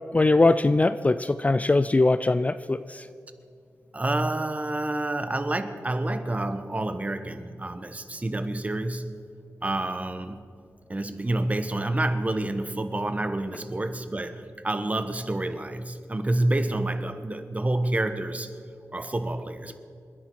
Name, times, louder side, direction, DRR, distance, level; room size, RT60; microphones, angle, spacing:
voice 1, 0.1-3.1, left 2 dB, 25° left, 13 dB, 0.4 m, -21 dB
voice 2, 3.9-9.1 9.6-10.5 10.9-18.6 18.9-19.8, right 1 dB, 25° right, 9 dB, 1.2 m, -28 dB
28.0 x 10.5 x 4.7 m, 2.5 s
wide cardioid pair, 90°, 6 cm